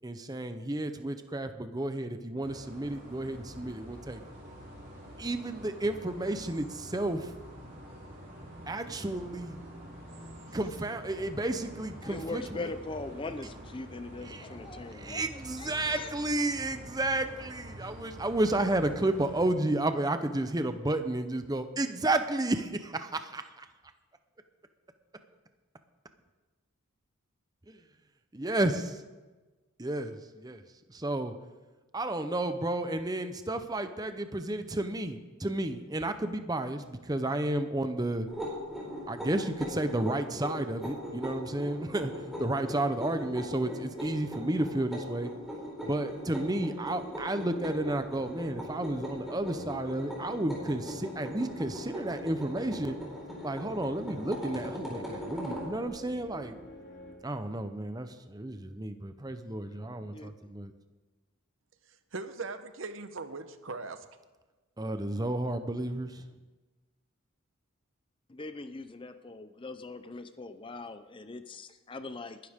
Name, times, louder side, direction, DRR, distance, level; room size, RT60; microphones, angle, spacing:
voice 1, 0.0-4.2 5.2-7.3 8.7-9.6 10.5-12.7 14.2-14.5 14.9-23.7 27.7-27.8 28.3-28.8 29.8-30.6 30.9-31.3 31.9-38.3 39.1-45.3 45.8-53.0 53.4-56.6 57.2-60.7 64.8-66.2, right 1 dB, 20° right, 9 dB, 0.7 m, -32 dB
sound 1, 2.4-19.5, equal, 40° right, 4.3 m, -47 dB
voice 2, 12.0-15.2 15.6-16.1 60.1-60.5 68.3-72.4, left 3 dB, 25° left, 11 dB, 0.5 m, -41 dB
sound 2, 38.3-55.7, equal, ahead, 4.6 m, -40 dB
sound 3, 46.1-57.1, left 1 dB, 50° left, 2.7 m, -51 dB
voice 3, 61.9-64.0, right 3 dB, 65° right, 10 dB, 0.9 m, -40 dB
21.0 x 11.5 x 3.6 m, 1.2 s
head